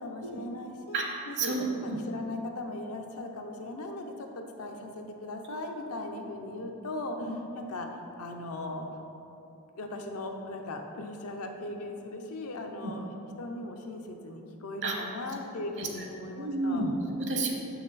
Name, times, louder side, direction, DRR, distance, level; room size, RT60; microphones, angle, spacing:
voice 1, 0.0-1.0 1.3-1.6 1.8-7.2 7.5-8.9 9.8-13.1 13.4-16.9, left 2 dB, 85° left, 3 dB, 0.7 m, -38 dB
voice 2, 0.9-2.0 7.2-7.3 12.8-12.9 14.8-14.9 15.6-16.1 16.3-17.5, right 2 dB, 55° right, 1 dB, 1.1 m, -31 dB
6.7 x 5.8 x 4.1 m, 2.8 s
head